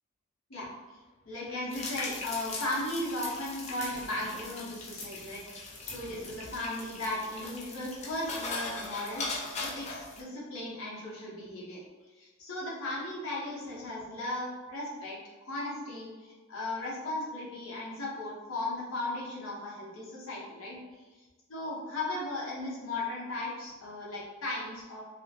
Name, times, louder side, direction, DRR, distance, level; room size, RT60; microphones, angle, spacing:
voice 1, 1.3-11.8 12.2-21.0 21.5-25.0, left 1 dB, 75° left, -5 dB, 0.8 m, -36 dB
sound 1, 1.7-10.2, left 3 dB, 30° left, 0.3 m, -40 dB
2.5 x 2.1 x 2.6 m, 1.3 s
head